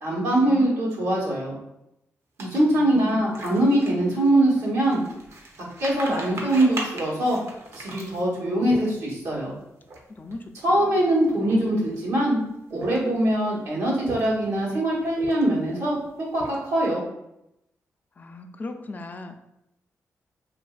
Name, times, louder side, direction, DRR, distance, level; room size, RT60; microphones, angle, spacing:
voice 1, 0.0-1.5 2.4-5.0 5.8-7.4 7.7-9.5 10.6-12.4 12.7-16.0 16.3-17.0, right 1 dB, 90° right, -6 dB, 1.0 m, -22 dB
sound 1, 2.4-9.3 9.8-10.0 10.2-10.5 11.1-12.0 12.6-13.3 13.8-14.6 15.1-15.7 16.1-16.9, right 1 dB, 60° right, 0.6 m, -39 dB
voice 2, 2.7-3.4 10.2-10.4 18.2-19.3, left 2 dB, 30° left, 5 dB, 0.3 m, -37 dB
2.8 x 2.4 x 2.3 m, 0.84 s
cardioid pair, 75°, 5 cm